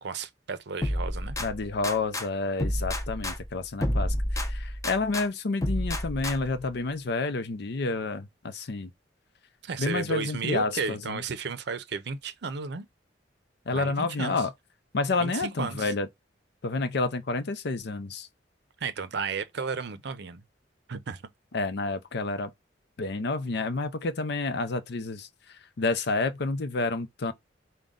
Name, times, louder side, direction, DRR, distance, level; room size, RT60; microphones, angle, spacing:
voice 1, 0.0-1.4 9.6-12.9 13.7-14.4 15.2-15.9 18.8-20.4 20.9-21.2, right 5 dB, 65° right, 0.6 m, -33 dB
sound 1, 0.8-2.3 2.6-5.3 5.6-6.6, left 1 dB, 20° left, 0.7 m, -30 dB
voice 2, 1.4-8.9 9.8-11.2 13.7-14.5 14.9-16.1 16.6-18.3 21.5-22.5 23.0-27.3, left 3 dB, 65° left, 0.6 m, -29 dB
5.1 x 2.3 x 3.7 m
head